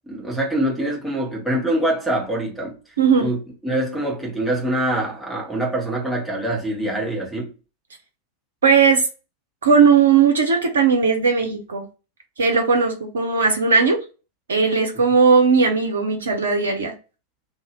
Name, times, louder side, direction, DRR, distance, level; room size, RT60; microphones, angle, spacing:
voice 1, 0.1-2.8 3.2-3.4 3.6-7.5, right 1 dB, 5° left, 1.1 m, -24 dB
voice 2, 3.0-3.3 8.6-9.1 9.6-11.8 12.4-14.0 14.5-16.9, right 5 dB, 70° right, 0.5 m, -17 dB
2.6 x 2.1 x 2.9 m
figure-of-eight pair, 90°, 0 cm